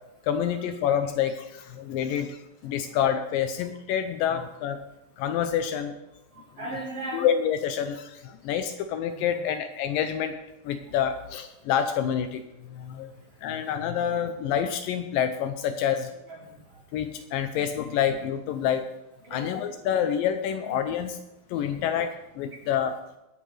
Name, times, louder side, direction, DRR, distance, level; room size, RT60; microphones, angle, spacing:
voice 1, 0.2-4.8 5.2-5.9 7.1-10.3 10.7-12.4 12.7-13.1 13.4-16.1 16.9-18.9 19.3-21.2 21.5-22.1 22.4-23.0, left 9 dB, 80° left, 8 dB, 2.1 m, -27 dB
voice 2, 6.3-7.2 9.2-9.3 16.3-16.8 19.2-19.5 21.5-21.9 22.6-22.7, right 2 dB, 60° right, 0 dB, 1.6 m, -39 dB
21.5 x 9.1 x 3.3 m, 0.94 s
omnidirectional pair, 4.4 m